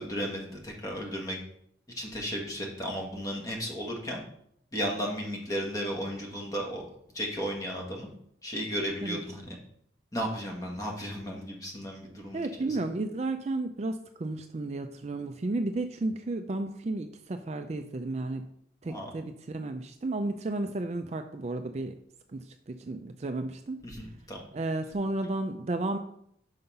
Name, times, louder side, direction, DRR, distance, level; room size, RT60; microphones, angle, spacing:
voice 1, 0.0-1.4 1.9-4.2 4.7-6.9 7.1-8.1 8.4-9.5 10.1-12.7 18.9-19.0 23.8-24.4, equal, 20° left, -1 dB, 1.5 m, -34 dB
voice 2, 12.3-18.5 18.8-22.0 22.3-23.8 24.5-26.0, right 2 dB, 35° right, 7 dB, 0.4 m, -33 dB
5.7 x 5.5 x 5.3 m, 0.71 s
head